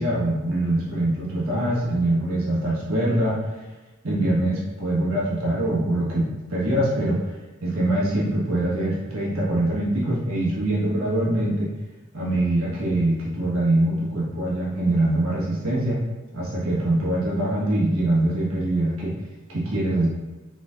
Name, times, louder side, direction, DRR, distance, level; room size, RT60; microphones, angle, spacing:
voice 1, 0.0-3.4 4.0-7.3 7.6-11.7 12.1-16.0 16.3-19.2 19.5-20.1, right 1 dB, 70° right, -6 dB, 1.4 m, -23 dB
4.4 x 4.4 x 2.5 m, 1.2 s
head